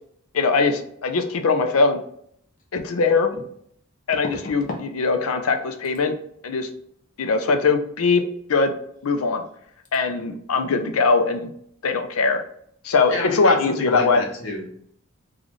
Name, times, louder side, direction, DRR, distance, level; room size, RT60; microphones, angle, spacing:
voice 1, 0.3-2.0 2.7-3.3 4.1-6.2 6.4-6.7 7.2-8.2 8.5-8.7 9.0-9.4 9.9-11.5 11.8-12.4 12.8-14.2, left 4 dB, 90° left, 6 dB, 0.5 m, -21 dB
sound 1, 2.6-2.7 4.1-4.9 5.2-5.6 5.8-6.0 9.0-9.1 9.3-9.6 9.8-10.0, left 2 dB, 40° left, 0.6 m, -36 dB
voice 2, 13.1-14.9, left 2 dB, 65° left, -2 dB, 1.0 m, -30 dB
4.0 x 2.4 x 3.1 m, 0.67 s
head